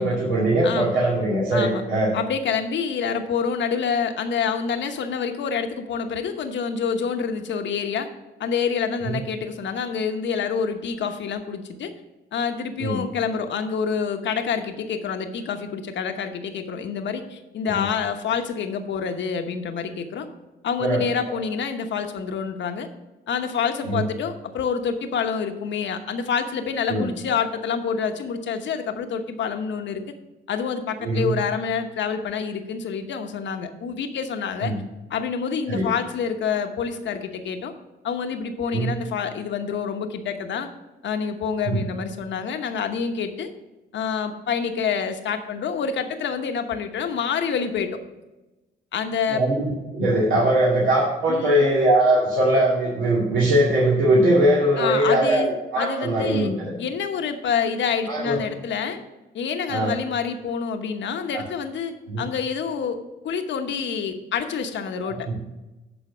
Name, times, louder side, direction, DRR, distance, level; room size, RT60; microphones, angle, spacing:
voice 1, 0.0-2.1 9.1-9.2 12.8-13.0 17.7-17.9 20.8-21.0 21.3-21.4 23.9-24.0 26.9-27.1 31.0-31.3 34.6-34.8 35.7-35.9 38.7-38.9 41.7-41.8 49.3-56.7 58.1-58.4 59.7-59.9 61.3-61.4 62.1-62.2 65.3-65.4, right 1 dB, 80° right, -6 dB, 2.3 m, -21 dB
voice 2, 0.6-1.0 1.5-1.8 2.1-8.1 8.4-11.9 12.3-20.3 20.6-22.9 23.3-30.0 30.5-34.7 35.1-37.7 38.0-40.7 41.0-43.5 43.9-48.0 48.9-49.4 51.3-51.7 54.8-56.5 56.8-59.0 59.3-63.0 63.2-65.3, left 6 dB, 65° left, 6 dB, 1.1 m, -27 dB
11.5 x 4.4 x 6.1 m, 1.1 s
cardioid pair, 90°, 20 cm